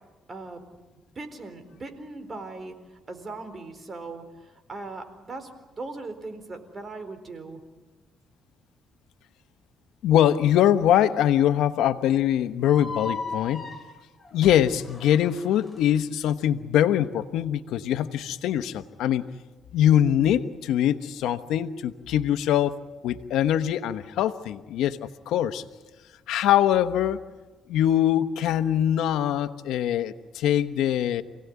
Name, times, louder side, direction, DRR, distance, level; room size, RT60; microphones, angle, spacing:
voice 1, 0.3-0.6 1.1-5.5 5.8-7.6, right 3 dB, 35° right, 8 dB, 4.1 m, -39 dB
voice 2, 10.0-13.7 14.3-19.2 19.7-22.8 23.0-25.6 26.3-27.2 27.7-31.2, left 11 dB, 85° left, 10 dB, 1.1 m, -23 dB
sound 1, 12.6-15.8, left 4 dB, 10° left, 3.5 m, -37 dB
28.5 x 18.0 x 9.5 m, 1.2 s
cardioid pair, 90°, 0 cm